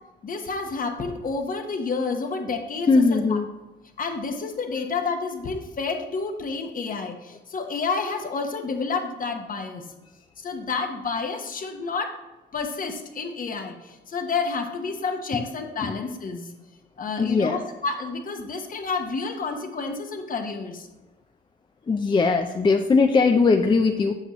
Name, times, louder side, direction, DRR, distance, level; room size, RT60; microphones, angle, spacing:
voice 1, 0.2-3.4 4.0-9.8 10.4-12.2 12.5-16.5 17.0-20.9, left 4 dB, 45° left, 5 dB, 1.0 m, -30 dB
voice 2, 2.9-3.5 15.8-15.9 17.2-17.6 21.9-24.1, left 4 dB, 25° left, 5 dB, 0.4 m, -20 dB
7.8 x 6.0 x 3.0 m, 1.1 s
cardioid pair, 90°, 20 cm